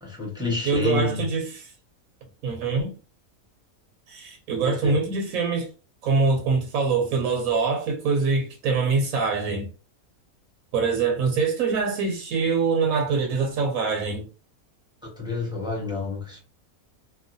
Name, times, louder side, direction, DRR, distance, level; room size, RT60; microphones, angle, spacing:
voice 1, 0.0-1.2 4.5-5.0 15.0-16.4, left 3 dB, 5° right, 0.8 m, -29 dB
voice 2, 0.6-1.7 2.4-2.9 4.1-5.7 6.0-9.7 10.7-14.3, right 4 dB, 80° right, 1.1 m, -24 dB
3.0 x 2.2 x 2.5 m
omnidirectional pair, 1.5 m